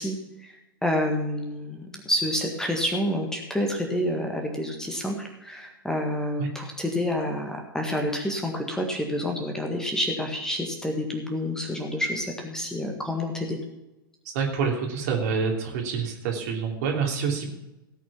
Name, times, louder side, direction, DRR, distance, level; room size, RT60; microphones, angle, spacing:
voice 1, 0.0-13.6, left 1 dB, 5° left, 2 dB, 1.7 m, -28 dB
voice 2, 14.2-17.5, right 5 dB, 50° right, 1 dB, 3.0 m, -27 dB
17.5 x 6.1 x 7.0 m, 0.96 s
figure-of-eight pair, 95°, 12 cm